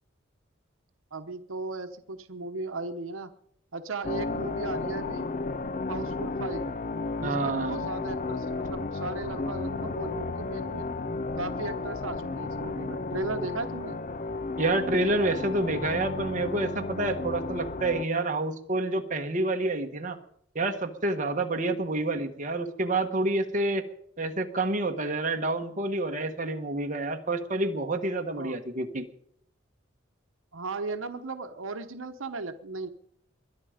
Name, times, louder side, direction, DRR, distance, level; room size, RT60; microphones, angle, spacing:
voice 1, 1.1-3.3 3.7-5.3 5.9-6.7 7.2-10.9 11.3-14.0 28.4-28.6 30.5-32.9, right 3 dB, 80° right, 8 dB, 1.0 m, -36 dB
sound 1, 4.0-18.1, left 3 dB, 40° left, 0.5 m, -33 dB
voice 2, 7.2-7.9 14.6-20.2 20.5-23.8 24.2-29.1, right 2 dB, 40° right, 4 dB, 1.3 m, -28 dB
21.5 x 10.5 x 5.0 m, 0.69 s
head